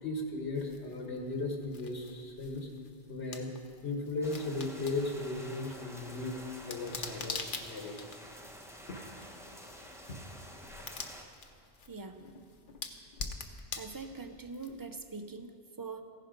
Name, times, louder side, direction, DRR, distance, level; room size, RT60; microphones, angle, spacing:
voice 1, 0.0-2.7 3.1-3.5 3.8-6.4 6.6-7.9 8.9-9.0 10.1-10.2, left 2 dB, 85° left, 1 dB, 1.4 m, -36 dB
sound 1, 0.5-15.1, left 4 dB, 55° left, 1.0 m, -46 dB
sound 2, 4.2-11.2, equal, 5° right, 1.0 m, -49 dB
voice 2, 11.9-12.3 13.8-16.0, right 4 dB, 30° right, 8 dB, 0.4 m, -43 dB
15.5 x 10.5 x 5.1 m, 2.6 s
omnidirectional pair, 1.1 m